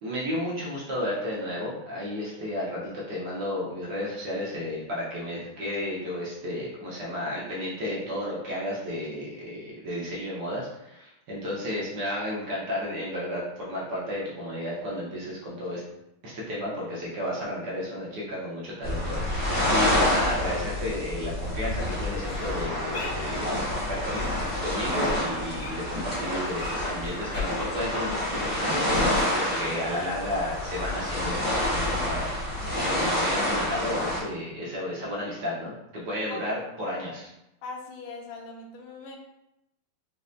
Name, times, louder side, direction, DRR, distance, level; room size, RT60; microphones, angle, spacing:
voice 1, 0.0-15.8 16.2-24.3 24.6-31.5 31.9-32.3 32.7-37.3, left 1 dB, 65° right, -5 dB, 1.2 m, -33 dB
sound 1, 18.8-34.2, left 1 dB, 5° right, 0.7 m, -28 dB
sound 2, 21.8-23.9 24.2-26.0 26.3-29.2, left 4 dB, 55° left, 1.5 m, -37 dB
voice 2, 37.6-39.2, left 3 dB, 80° left, 1 dB, 1.4 m, -40 dB
5.3 x 2.0 x 2.5 m, 0.87 s
omnidirectional pair, 2.3 m